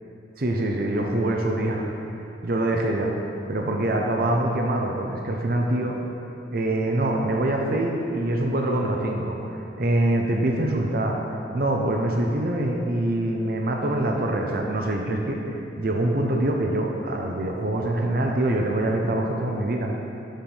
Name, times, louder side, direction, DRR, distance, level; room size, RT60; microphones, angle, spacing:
voice 1, 0.4-1.8 2.4-3.1 3.5-6.0 6.5-9.4 9.8-11.2 11.5-15.4 15.8-19.9, right 1 dB, 55° right, 1 dB, 0.8 m, -24 dB
7.3 x 7.1 x 5.6 m, 2.8 s
head